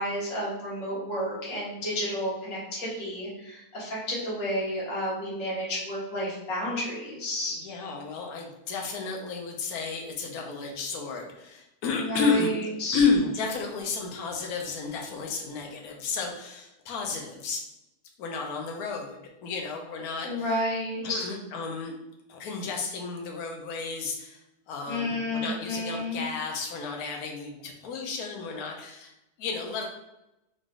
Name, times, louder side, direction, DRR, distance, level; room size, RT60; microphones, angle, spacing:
voice 1, 0.0-7.5 11.9-13.0 20.2-21.2 24.9-26.2, equal, 55° left, -7 dB, 1.7 m, -31 dB
voice 2, 7.5-12.5 12.9-17.6 18.2-20.6 21.0-21.9 22.3-29.9, left 4 dB, 70° left, 1 dB, 1.1 m, -32 dB
3.8 x 3.2 x 2.4 m, 0.90 s
omnidirectional pair, 1.7 m